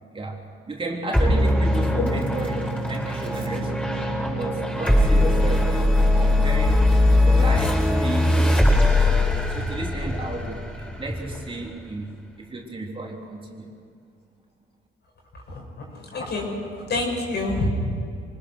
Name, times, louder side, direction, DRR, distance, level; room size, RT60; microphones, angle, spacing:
voice 1, 0.1-2.6 2.9-4.0 4.3-6.9 7.2-13.7, right 2 dB, 25° right, -1 dB, 3.6 m, -34 dB
sound 1, 1.1-11.9, left 1 dB, 5° left, 7.6 m, -21 dB
voice 2, 15.5-17.7, left 2 dB, 60° left, 0 dB, 6.9 m, -28 dB
25.0 x 19.5 x 6.5 m, 2.4 s
cardioid pair, 90°, 20 cm